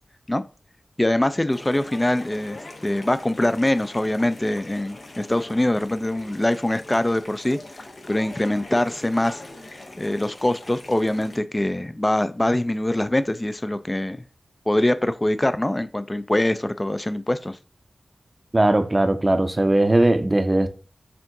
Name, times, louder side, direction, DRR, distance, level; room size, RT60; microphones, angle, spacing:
voice 1, 1.0-2.6 2.8-7.6 8.1-14.2 14.7-17.6, left 1 dB, 25° left, 0.3 m, -23 dB
sound 1, 1.5-11.4, left 2 dB, 70° left, 0.7 m, -42 dB
voice 2, 18.5-20.7, right 1 dB, 35° right, 0.5 m, -19 dB
4.4 x 3.6 x 2.6 m
cardioid pair, 45°, 0 cm